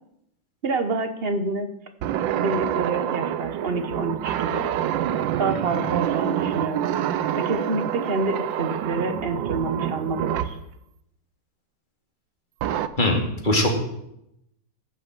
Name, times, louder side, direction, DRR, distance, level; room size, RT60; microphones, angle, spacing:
voice 1, 0.6-1.7 2.3-4.6 5.4-6.9 7.4-10.6, right 3 dB, 40° right, 8 dB, 0.9 m, -27 dB
sound 1, 2.0-10.6 12.6-12.9, right 10 dB, 75° right, 1.3 m, -27 dB
voice 2, 13.0-13.7, left 1 dB, 25° left, 1 dB, 2.3 m, -21 dB
15.5 x 6.0 x 7.6 m, 0.81 s
omnidirectional pair, 2.2 m